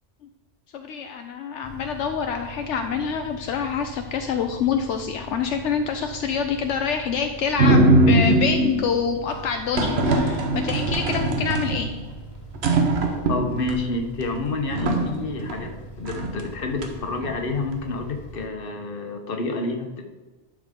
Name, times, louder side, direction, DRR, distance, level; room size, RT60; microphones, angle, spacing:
voice 1, 0.7-11.9, left 6 dB, 75° left, 5 dB, 0.9 m, -26 dB
sound 1, 1.6-18.5, right 1 dB, 30° left, 0.8 m, -42 dB
sound 2, 7.6-8.9 9.7-12.1 12.5-13.8 14.2-14.3 14.7-15.7 16.1-16.4 16.8-17.3, right 2 dB, 65° right, 1.2 m, -21 dB
voice 2, 13.3-15.7 16.0-20.0, left 3 dB, 50° left, 4 dB, 1.2 m, -29 dB
11.0 x 6.1 x 3.7 m, 1.2 s
omnidirectional pair, 1.2 m